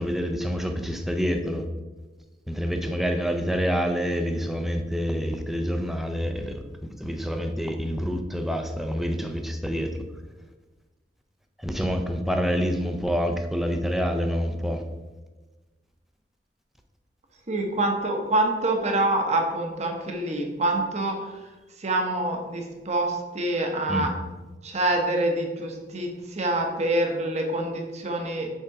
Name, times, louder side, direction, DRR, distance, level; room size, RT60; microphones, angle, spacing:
voice 1, 0.0-1.6 2.5-6.6 7.0-9.9 11.6-14.8 23.9-24.1, equal, ahead, 5 dB, 0.4 m, -27 dB
voice 2, 17.5-21.4 21.8-24.1 24.6-28.5, right 2 dB, 40° right, 3 dB, 0.8 m, -26 dB
5.5 x 3.6 x 4.7 m, 1.2 s
head